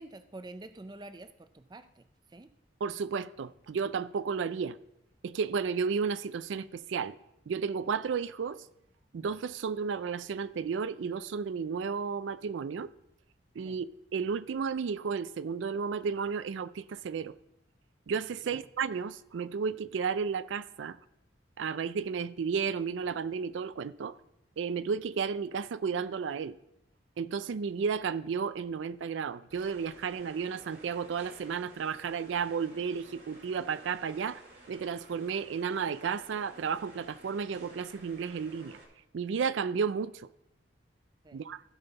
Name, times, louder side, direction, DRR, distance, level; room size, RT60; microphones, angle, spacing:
voice 1, 0.0-2.5 13.6-13.8 18.4-18.6 41.2-41.4, right 2 dB, 20° right, 0.4 m, -48 dB
voice 2, 2.8-4.8 5.2-7.2 7.5-8.6 9.1-12.9 13.6-13.9 14.1-17.3 18.1-21.0 21.6-24.1 24.6-26.5 27.2-34.4 34.7-38.8 39.1-40.3 41.3-41.6, right 6 dB, 85° right, 0.4 m, -33 dB
sound 1, 29.5-38.8, right 2 dB, 60° right, 2.1 m, -54 dB
15.5 x 5.8 x 4.0 m
head